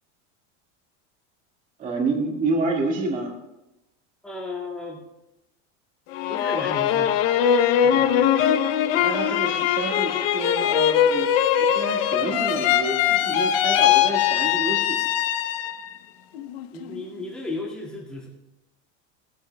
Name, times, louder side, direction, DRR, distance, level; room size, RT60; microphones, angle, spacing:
voice 1, 1.8-3.3 9.0-11.3 11.6-15.0, right 3 dB, 20° right, 0 dB, 1.9 m, -28 dB
voice 2, 4.2-5.0 6.3-7.2 7.8-8.5 16.7-18.3, left 2 dB, ahead, -5 dB, 2.0 m, -34 dB
sound 1, 6.1-15.9 16.3-17.0, left 10 dB, 50° left, 0.7 m, -21 dB
18.0 x 13.5 x 2.3 m, 0.91 s
supercardioid pair, 180°, 36 cm